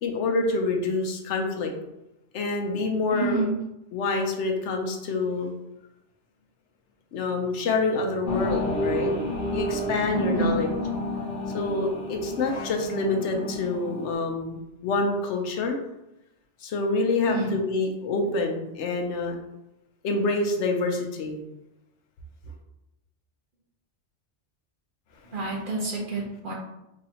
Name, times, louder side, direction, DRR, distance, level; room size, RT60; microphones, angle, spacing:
voice 1, 0.0-1.7 2.3-3.4 3.9-5.5 7.1-9.1 9.5-10.7 11.5-15.8 16.6-19.4 20.0-21.4, left 3 dB, 80° left, 3 dB, 0.9 m, -27 dB
voice 2, 3.1-3.6 10.1-10.6 17.3-17.5 25.3-26.5, right 3 dB, 50° right, -3 dB, 1.0 m, -28 dB
sound 1, 8.2-14.1, left 1 dB, 55° left, 1.0 m, -30 dB
4.0 x 2.7 x 2.8 m, 0.90 s
omnidirectional pair, 1.2 m